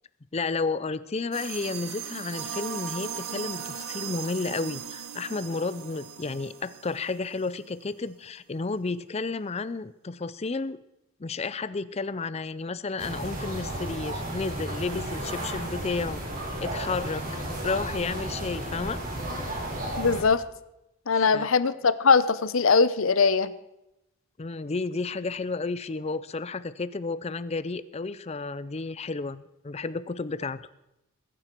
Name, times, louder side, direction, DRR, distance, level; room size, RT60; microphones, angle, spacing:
voice 1, 0.3-10.8 11.2-16.2 16.6-17.2 17.6-19.0 21.1-21.5 24.4-30.6, left 3 dB, 30° left, 15 dB, 0.5 m, -32 dB
sound 1, 1.3-7.6, right 8 dB, 90° right, 1.2 m, -38 dB
sound 2, 13.0-20.2, right 1 dB, 40° right, 4.0 m, -33 dB
voice 2, 20.0-20.4 21.1-23.5, left 4 dB, 70° left, 15 dB, 0.7 m, -21 dB
22.0 x 10.0 x 4.5 m, 0.89 s
head